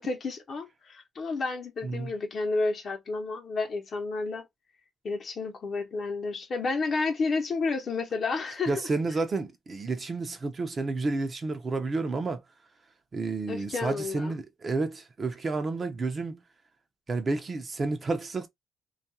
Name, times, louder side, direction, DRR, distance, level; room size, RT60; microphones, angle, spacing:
voice 1, 0.0-4.4 5.0-8.9 13.5-14.4, left 3 dB, 50° left, 0.8 m, -31 dB
voice 2, 8.7-12.4 13.1-16.4 17.1-18.5, right 3 dB, 35° right, 0.5 m, -30 dB
2.4 x 2.2 x 2.7 m
cardioid pair, 90°, 0 cm